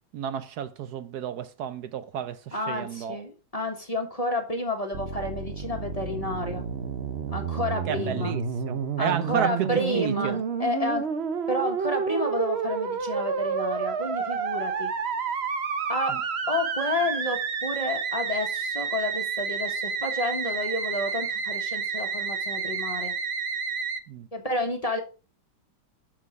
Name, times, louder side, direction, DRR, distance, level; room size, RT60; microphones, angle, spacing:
voice 1, 0.1-3.2 7.9-10.4 16.1-16.2 24.1-24.3, right 9 dB, 70° right, 1.1 m, -32 dB
voice 2, 2.5-6.6 7.3-8.3 9.0-11.1 11.5-14.9 15.9-16.1 16.5-23.1 24.3-25.0, left 1 dB, 25° left, 1.3 m, -30 dB
Musical instrument, 4.9-24.0, right 6 dB, 45° right, 0.9 m, -30 dB
7.5 x 6.3 x 4.7 m
omnidirectional pair, 1.9 m